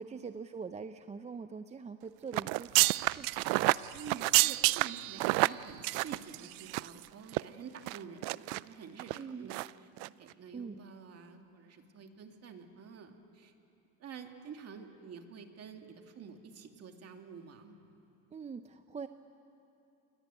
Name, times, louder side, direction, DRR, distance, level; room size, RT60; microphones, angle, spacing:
voice 1, 0.0-3.3 9.2-9.5 10.5-10.8 18.3-19.1, right 5 dB, 20° right, 9 dB, 0.6 m, -43 dB
sound 1, 2.3-7.0 7.3-7.4 7.9-8.6 9.0-9.2 9.5-9.7 10.0-10.1, right 23 dB, 80° right, 0.5 m, -29 dB
voice 2, 3.9-13.5 14.0-17.7, right 6 dB, 40° right, 4 dB, 2.5 m, -49 dB
28.5 x 22.5 x 9.0 m, 2.8 s
cardioid pair, 125°, 38 cm